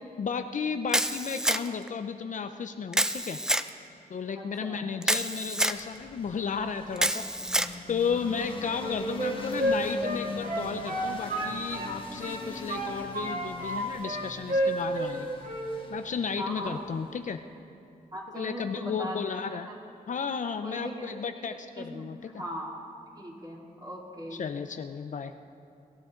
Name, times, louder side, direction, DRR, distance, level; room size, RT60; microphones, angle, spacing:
voice 1, 0.2-3.4 4.1-7.3 7.9-15.3 15.9-17.4 18.3-19.7 20.1-22.3 24.3-25.3, left 6 dB, 55° left, 8 dB, 0.6 m, -33 dB
Camera, 0.9-1.9 2.9-3.7 5.0-5.8 7.0-7.7, right 1 dB, 5° right, 0.5 m, -27 dB
voice 2, 4.3-4.8 16.3-16.8 18.1-19.2 19.5-19.8 20.6-22.1 22.3-22.7 23.2-24.4, equal, 25° right, -3 dB, 3.2 m, -39 dB
sound 1, 5.6-17.4, left 2 dB, 35° left, 1.9 m, -43 dB
Wind instrument woodwind instrument, 8.8-11.9 12.2-13.8 14.0-15.2 15.4-15.7, right 1 dB, 55° right, 2.4 m, -30 dB
23.5 x 13.5 x 3.9 m, 2.6 s
cardioid pair, 95°, 16 cm